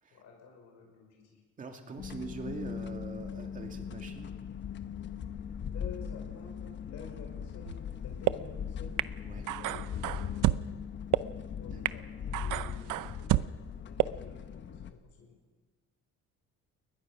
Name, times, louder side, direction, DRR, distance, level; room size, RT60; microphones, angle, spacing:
voice 1, 0.1-1.4 5.7-9.0 9.4-10.8 11.6-15.3, left 6 dB, 65° left, 1 dB, 5.3 m, -50 dB
voice 2, 1.6-4.3 9.2-9.5 11.7-12.0, right 4 dB, 25° right, 4 dB, 2.3 m, -43 dB
sound 1, 2.0-14.9, left 7 dB, 40° left, 1.1 m, -40 dB
sound 2, 7.7-7.8 8.3-8.4 9.0-9.1 9.5-10.6 11.1-11.2 11.8-11.9 12.3-13.5 14.0-14.1, right 16 dB, 90° right, 0.7 m, -28 dB
29.0 x 21.5 x 6.1 m, 1.4 s
cardioid pair, 180°, 30 cm